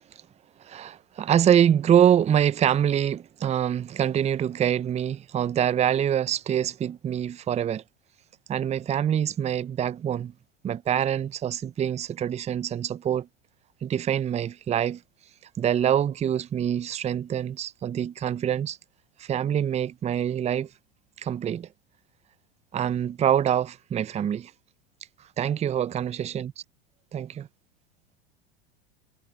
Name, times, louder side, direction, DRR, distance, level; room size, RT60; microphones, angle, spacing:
voice 1, 0.6-7.8 8.5-10.3 10.6-13.3 13.8-15.0 15.6-18.8 19.2-20.7 21.2-21.7 22.7-24.5 25.4-26.5 27.1-27.4, right 9 dB, 20° right, 0.6 m, -25 dB
hypercardioid pair, 90°, 31 cm